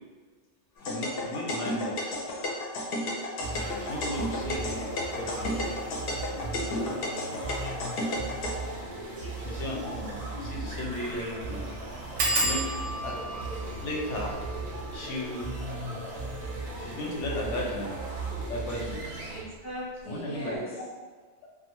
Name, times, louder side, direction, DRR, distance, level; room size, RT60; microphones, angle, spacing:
voice 1, 0.8-2.2 3.7-4.9 5.1-5.7 9.4-11.6 12.4-12.6 13.0-13.3 13.8-14.4 14.9-15.5 16.8-18.0 18.5-19.3 20.1-20.6, left 1 dB, 90° left, -2 dB, 0.9 m, -35 dB
sound 1, 0.8-8.5, left 1 dB, 65° left, 0.7 m, -32 dB
sound 2, 3.4-19.4, right 2 dB, 55° right, 0.4 m, -37 dB
sound 3, 9.1-9.2 9.6-9.7 9.9-10.0 10.6-10.9 11.1-11.2 12.2-17.4 18.1-18.6 19.0-19.3 19.6-19.7, right 2 dB, 90° right, 1.0 m, -34 dB
voice 2, 16.3-17.1 19.0-20.8, equal, 25° left, -7 dB, 0.4 m, -42 dB
2.3 x 2.3 x 2.9 m, 1.4 s
omnidirectional pair, 1.2 m